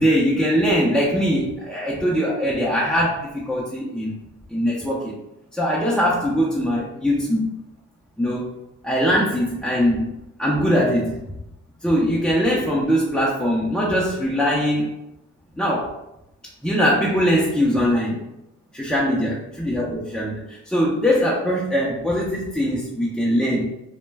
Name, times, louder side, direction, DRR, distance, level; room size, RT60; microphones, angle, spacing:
voice 1, 0.0-4.2 4.5-5.2 5.5-7.6 8.2-8.5 8.8-10.1 10.4-11.2 11.8-14.9 15.6-16.0 16.6-18.2 18.7-23.7, equal, ahead, -6 dB, 0.4 m, -21 dB
2.2 x 2.1 x 3.2 m, 0.86 s
cardioid pair, 90°, 30 cm